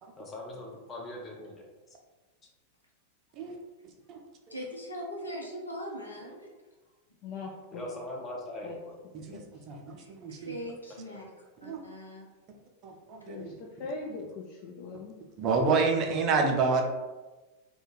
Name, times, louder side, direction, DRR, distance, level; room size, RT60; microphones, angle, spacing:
voice 1, 0.2-1.6 7.7-9.0, left 1 dB, 20° left, -2 dB, 0.8 m, -40 dB
voice 2, 4.5-6.5 10.0-11.2 11.6-12.2, equal, 85° left, -3 dB, 0.6 m, -40 dB
voice 3, 7.2-7.8 8.6-8.8 9.3-9.4 13.3-13.5 13.8-15.2, left 4 dB, 40° left, -1 dB, 0.3 m, -40 dB
voice 4, 9.7-10.5 11.6-11.8 12.8-13.5 15.4-16.8, right 4 dB, 35° right, 2 dB, 0.5 m, -28 dB
2.5 x 2.2 x 3.9 m, 1.2 s
figure-of-eight pair, 90°, 0 cm